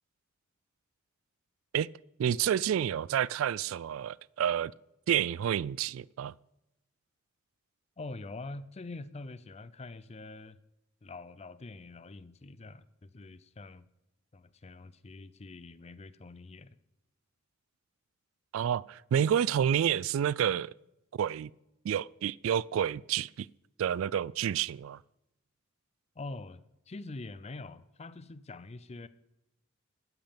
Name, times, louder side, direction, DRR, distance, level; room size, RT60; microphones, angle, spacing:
voice 1, 2.2-4.7 5.1-6.3 18.5-20.7 21.1-21.5 21.8-23.5 23.8-25.0, right 9 dB, 75° right, 0.3 m, -29 dB
voice 2, 8.0-10.6 11.0-13.9 14.3-16.8 26.2-29.1, left 2 dB, 30° left, 0.5 m, -45 dB
13.0 x 9.2 x 5.2 m
head